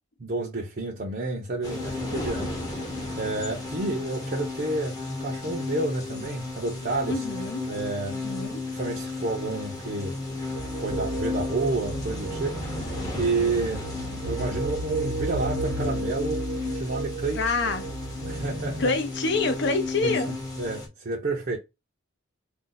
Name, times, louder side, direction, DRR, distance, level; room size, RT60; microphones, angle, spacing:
voice 1, 0.2-2.5 3.2-7.2 7.7-8.2 8.7-10.2 10.7-12.6 13.1-13.9 14.3-16.5 16.7-17.5 18.2-18.9 20.0-21.6, right 2 dB, 45° right, 0.6 m, -30 dB
sound 1, 1.6-20.9, left 3 dB, 15° left, 0.8 m, -34 dB
voice 2, 7.0-7.6 8.1-8.6 17.3-17.8 18.8-20.3, left 3 dB, 55° left, 0.6 m, -27 dB
sound 2, 10.5-18.8, right 3 dB, 85° right, 1.0 m, -33 dB
2.6 x 2.2 x 3.8 m
head